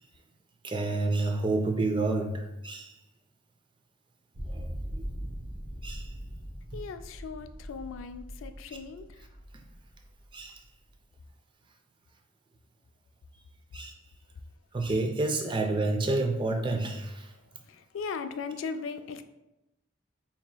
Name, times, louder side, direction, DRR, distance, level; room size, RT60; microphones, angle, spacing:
voice 1, 0.6-2.9 4.5-5.0 5.8-6.1 9.5-9.6 10.3-10.6 13.7-13.9 14.7-17.3, right 2 dB, 25° right, 4 dB, 0.3 m, -29 dB
sound 1, 4.3-10.4, equal, 90° right, 0.7 m, -40 dB
voice 2, 6.7-9.3 17.6-19.2, left 5 dB, 85° left, 9 dB, 0.3 m, -38 dB
5.5 x 2.8 x 2.2 m, 0.93 s
head